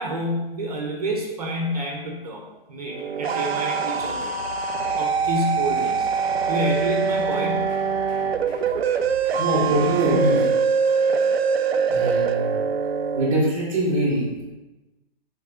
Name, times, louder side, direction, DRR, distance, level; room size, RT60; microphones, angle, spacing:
voice 1, 0.0-4.4 5.0-6.1 6.5-7.8, equal, 40° right, 0 dB, 0.8 m, -28 dB
sound 1, 2.9-13.3, right 6 dB, 90° right, 0.6 m, -23 dB
sound 2, 3.9-10.1, right 1 dB, 20° left, 0.7 m, -44 dB
voice 2, 9.4-10.5 11.9-12.6 13.1-14.4, right 1 dB, 10° right, -8 dB, 0.9 m, -22 dB
6.2 x 3.5 x 4.8 m, 1.1 s
hypercardioid pair, 175°, 30 cm